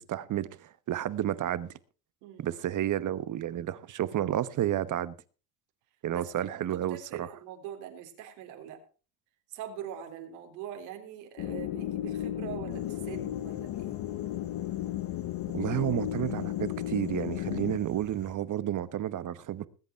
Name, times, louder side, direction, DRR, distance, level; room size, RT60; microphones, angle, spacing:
voice 1, 0.0-1.7 2.4-5.1 6.0-7.3 15.5-19.7, right 11 dB, 45° right, 1.1 m, -31 dB
voice 2, 2.2-2.5 6.1-8.8 9.5-14.0, right 9 dB, 85° right, 3.9 m, -43 dB
sound 1, 11.4-17.8, left 13 dB, 55° left, 0.8 m, -34 dB
sound 2, 12.7-18.4, left 5 dB, 30° left, 1.7 m, -50 dB
20.5 x 8.2 x 4.5 m
supercardioid pair, 105°, 44 cm